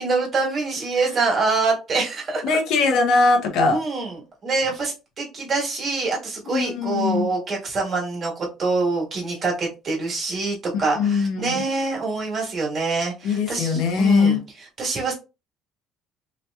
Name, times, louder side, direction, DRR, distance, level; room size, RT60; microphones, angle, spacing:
voice 1, 0.0-2.6 3.7-15.1, right 3 dB, 35° right, -1 dB, 1.4 m, -25 dB
voice 2, 2.4-3.8 6.4-7.3 11.0-11.6 13.2-14.4, left 4 dB, 70° left, 4 dB, 0.8 m, -20 dB
3.0 x 2.8 x 2.2 m, 0.28 s
cardioid pair, 145°, 0 cm